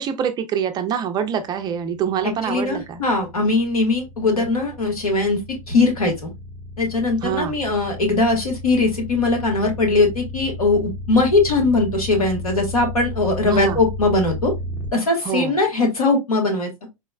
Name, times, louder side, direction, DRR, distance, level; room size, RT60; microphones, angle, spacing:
voice 1, 0.0-3.0 7.2-7.5 13.4-13.8 15.2-15.5, right 8 dB, 25° right, 0.4 m, -25 dB
sound 1, 1.6-14.9, left 2 dB, 10° left, 0.9 m, -33 dB
voice 2, 2.5-5.4 5.7-6.3 6.8-14.5 14.9-16.7, left 3 dB, 90° left, 1.2 m, -20 dB
3.9 x 2.0 x 2.3 m
hypercardioid pair, 110°, 18 cm